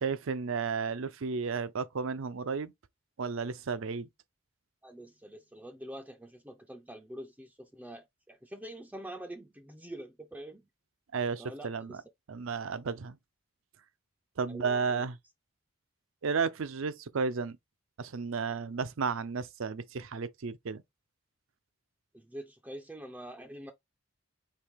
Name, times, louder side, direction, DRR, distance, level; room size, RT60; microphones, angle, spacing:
voice 1, 0.0-2.7 3.2-4.1 11.1-12.0 12.3-13.2 14.4-15.2 16.2-17.6 18.0-20.8, right 5 dB, 70° right, 0.5 m, -33 dB
voice 2, 4.8-10.7 11.4-12.0 14.5-15.0 22.1-23.7, right 1 dB, 5° right, 0.4 m, -45 dB
4.7 x 2.9 x 3.4 m
head